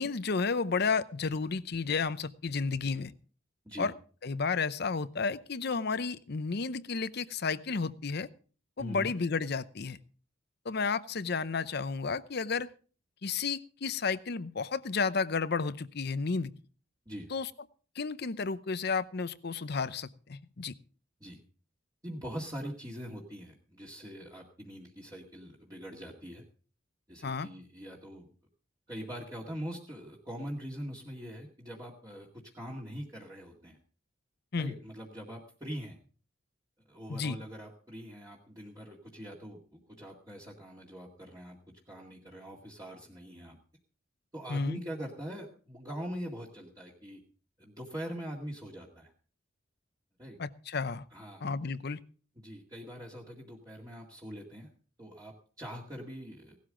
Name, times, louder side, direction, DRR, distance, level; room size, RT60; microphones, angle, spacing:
voice 1, 0.0-3.1 3.8-3.9 4.2-8.3 8.8-10.0 10.6-12.7 13.2-16.5 17.3-17.5 18.0-20.7 27.2-27.5 34.5-34.7 37.1-37.4 44.5-44.8 50.4-51.0 51.4-52.0, left 4 dB, 55° left, 15 dB, 0.7 m, -32 dB
voice 2, 8.8-9.1 17.1-17.3 21.2-21.4 22.0-26.4 27.1-28.3 28.9-32.3 32.5-33.8 34.6-36.0 36.9-41.6 41.9-43.6 44.3-47.2 47.6-49.1 50.2-50.4 51.1-51.5 52.4-54.7 55.0-56.6, equal, 20° right, -4 dB, 2.1 m, -42 dB
17.5 x 12.5 x 3.8 m, 0.39 s
head